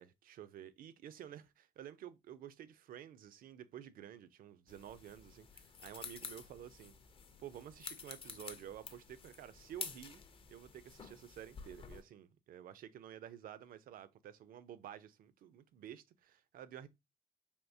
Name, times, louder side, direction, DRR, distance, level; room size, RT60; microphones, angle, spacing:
voice 1, 0.0-6.9 7.4-10.2 10.5-16.9, right 10 dB, 65° right, 0.4 m, -51 dB
sound 1, 4.7-12.0, left 5 dB, 35° left, 0.4 m, -50 dB
3.5 x 2.6 x 2.6 m
cardioid pair, 100°, 16 cm